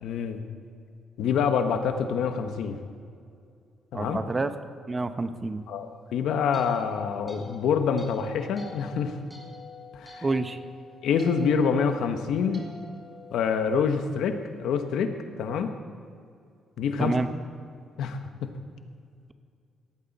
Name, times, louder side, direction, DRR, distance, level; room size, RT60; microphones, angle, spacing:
voice 1, 0.0-0.4 1.2-2.8 3.9-4.2 5.7-5.9 6.1-9.2 9.9-10.3 11.0-12.7 13.3-15.7 16.8-17.1 18.0-18.5, left 6 dB, 80° left, 7 dB, 1.3 m, -26 dB
voice 2, 3.9-4.5 4.9-5.6 10.2-10.6 17.0-17.3, right 3 dB, 25° right, 10 dB, 0.9 m, -28 dB
sound 1, 6.0-14.4, left 4 dB, 5° right, 3.8 m, -48 dB
18.0 x 14.0 x 4.2 m, 2.3 s
cardioid pair, 90°, 0 cm